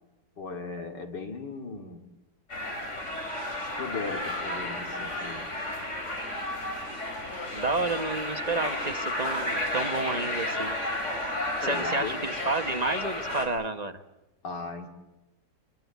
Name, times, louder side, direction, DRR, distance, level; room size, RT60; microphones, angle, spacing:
voice 1, 0.4-2.1 3.6-5.5 11.6-12.3 14.4-14.9, left 4 dB, 85° left, 5 dB, 3.0 m, -37 dB
sound 1, 2.5-13.5, left 1 dB, 40° left, 4.3 m, -32 dB
voice 2, 7.5-10.8 11.6-14.0, right 3 dB, 30° right, 8 dB, 0.9 m, -30 dB
24.5 x 22.5 x 8.2 m, 1.0 s
omnidirectional pair, 1.8 m